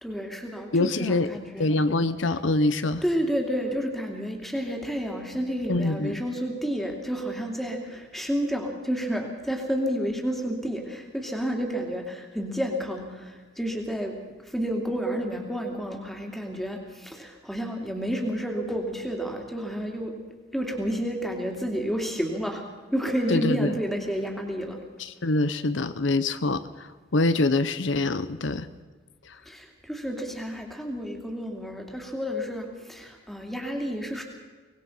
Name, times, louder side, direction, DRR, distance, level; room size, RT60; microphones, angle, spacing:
voice 1, 0.0-1.8 3.0-20.1 20.5-22.6 22.9-24.8 29.5-34.2, equal, ahead, 2 dB, 2.7 m, -30 dB
voice 2, 0.7-1.3 1.6-3.0 5.7-6.2 23.3-23.7 25.0-28.7 29.3-29.4, left 2 dB, 75° left, 12 dB, 0.9 m, -25 dB
24.0 x 20.0 x 5.6 m, 1.4 s
head